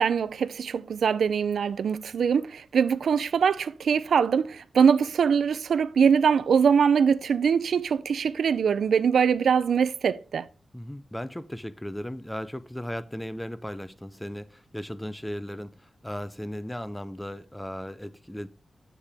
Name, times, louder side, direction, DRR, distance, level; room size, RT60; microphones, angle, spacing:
voice 1, 0.0-10.5, right 6 dB, 85° right, 0.4 m, -23 dB
voice 2, 10.7-18.5, equal, 5° left, 0.4 m, -36 dB
7.4 x 6.7 x 3.4 m
wide cardioid pair, 165°, 0 cm